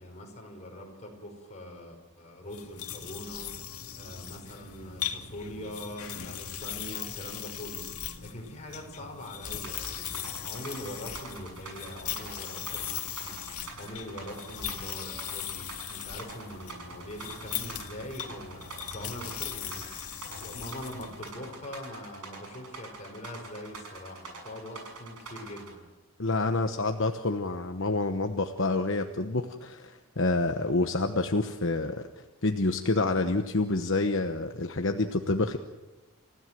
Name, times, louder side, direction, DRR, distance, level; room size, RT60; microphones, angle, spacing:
voice 1, 0.0-25.8, left 1 dB, 30° left, 1 dB, 5.5 m, -43 dB
sound 1, 2.5-21.3, left 10 dB, 80° left, 2.1 m, -39 dB
sound 2, 9.6-25.7, right 4 dB, 90° right, 6.8 m, -44 dB
voice 2, 26.2-32.0 32.4-35.6, left 2 dB, 60° left, 6 dB, 1.1 m, -28 dB
29.0 x 16.0 x 7.7 m, 1.1 s
head